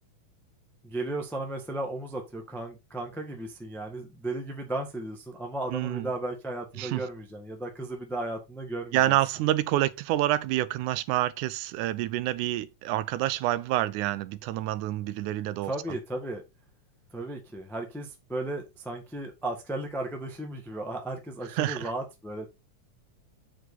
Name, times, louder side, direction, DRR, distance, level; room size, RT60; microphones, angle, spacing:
voice 1, 0.8-9.2 15.6-16.4 17.1-22.5, right 2 dB, ahead, 0.4 m, -35 dB
voice 2, 5.7-6.1 6.8-7.0 8.9-15.7 21.5-21.9, right 15 dB, 85° right, 2.1 m, -27 dB
7.7 x 4.9 x 4.0 m
omnidirectional pair, 3.5 m